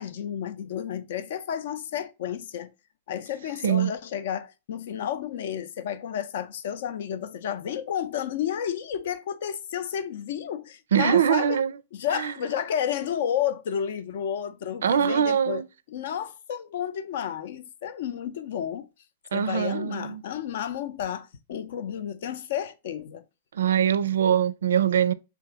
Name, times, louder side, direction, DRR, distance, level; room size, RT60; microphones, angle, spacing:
voice 1, 0.0-2.7 3.1-11.6 11.9-15.6 15.9-18.9 19.3-23.2, left 9 dB, 65° left, 0.6 m, -31 dB
voice 2, 10.9-11.7 12.1-12.3 14.8-15.7 19.3-20.2 23.5-25.1, right 9 dB, 90° right, 0.4 m, -23 dB
3.5 x 2.9 x 4.6 m
hypercardioid pair, 145°, 0 cm